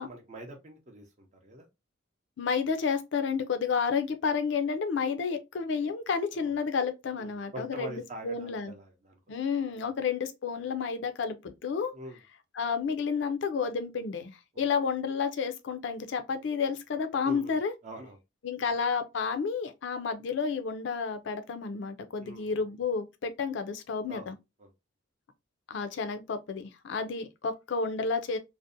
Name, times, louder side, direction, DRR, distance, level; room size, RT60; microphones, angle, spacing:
voice 1, 0.0-1.7 6.3-6.5 7.2-9.2 9.8-9.9 11.9-12.2 14.5-14.6 17.2-17.6 17.8-18.2 18.6-18.7 22.2-22.6 24.1-24.3 24.6-24.7, right 1 dB, 35° right, 0.5 m, -44 dB
voice 2, 2.4-8.7 9.3-11.9 12.6-17.7 18.4-24.4 25.7-28.4, left 5 dB, 60° left, 0.4 m, -31 dB
2.6 x 2.0 x 2.4 m
head